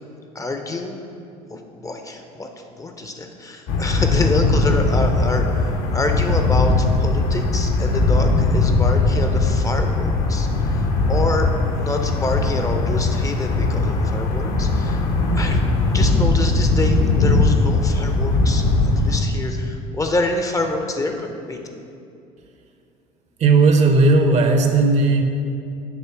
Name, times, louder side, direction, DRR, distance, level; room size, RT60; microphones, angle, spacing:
voice 1, 0.3-1.1 1.5-2.5 2.8-6.7 7.0-10.5 11.1-11.5 11.8-15.0 15.3-15.6 15.9-18.6 19.0-21.6, left 2 dB, 20° left, 4 dB, 0.6 m, -27 dB
sound 1, 3.7-19.2, left 3 dB, 55° left, 0.8 m, -19 dB
voice 2, 23.4-25.2, right 3 dB, 40° right, 5 dB, 0.7 m, -15 dB
7.3 x 3.1 x 5.7 m, 2.5 s
figure-of-eight pair, 65°, 18 cm